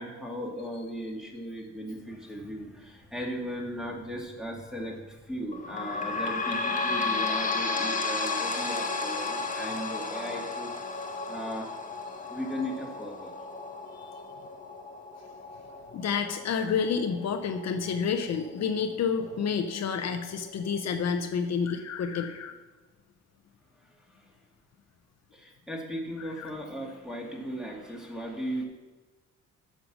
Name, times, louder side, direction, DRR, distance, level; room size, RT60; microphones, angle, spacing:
voice 1, 0.0-10.7 11.3-11.7 12.3-13.3 23.8-24.4 25.3-28.6, equal, ahead, -1 dB, 2.5 m, -37 dB
sound 1, 5.5-18.7 19.2-19.3 19.6-19.7 20.5-20.6, left 3 dB, 25° left, 1.4 m, -33 dB
voice 2, 15.9-22.6 26.4-26.5, left 6 dB, 60° left, 6 dB, 0.8 m, -29 dB
8.9 x 6.7 x 6.2 m, 1.2 s
cardioid pair, 90°, 30 cm